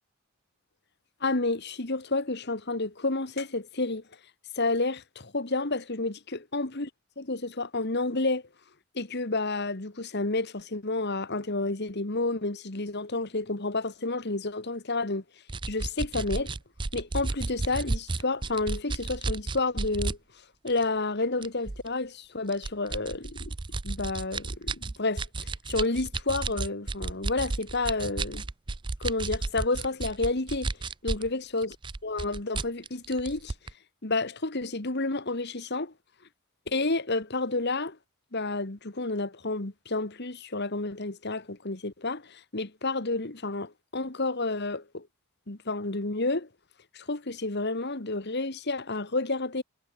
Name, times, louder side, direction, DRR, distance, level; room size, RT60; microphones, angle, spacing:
voice 1, 1.2-4.0 4.6-6.9 7.2-8.4 9.0-15.2 15.7-16.5 16.9-20.2 20.6-23.5 23.8-25.3 25.7-28.5 29.0-30.7 31.0-31.8 32.0-33.5 34.0-35.9 36.7-38.0 38.3-45.1 45.5-46.5 46.9-49.6, left 2 dB, 50° left, 1.7 m, -30 dB
sound 1, 15.5-20.2 20.7-20.8 21.4-21.9 22.5-31.3 31.6-33.7, right 3 dB, 20° right, 0.5 m, -32 dB
head